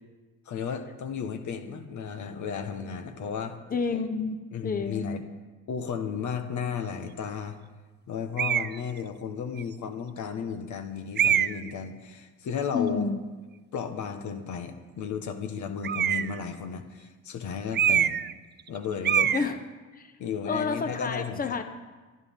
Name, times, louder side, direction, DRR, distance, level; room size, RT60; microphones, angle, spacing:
voice 1, 0.4-3.6 4.5-5.2 5.7-7.6 8.1-13.1 13.7-18.2 18.7-19.4 20.2-21.6, left 6 dB, 70° left, 7 dB, 1.5 m, -34 dB
voice 2, 3.7-4.4 4.6-5.2 12.7-13.2 19.3-19.6 20.0-20.1 20.4-21.6, left 5 dB, 30° left, 7 dB, 1.0 m, -29 dB
sound 1, 8.4-8.8 9.6-9.7 11.2-11.7 15.8-16.4 17.7-18.3 18.6-18.8 19.0-19.5, right 9 dB, 35° right, 0.4 m, -24 dB
24.0 x 11.0 x 3.8 m, 1.3 s
cardioid pair, 90°, 30 cm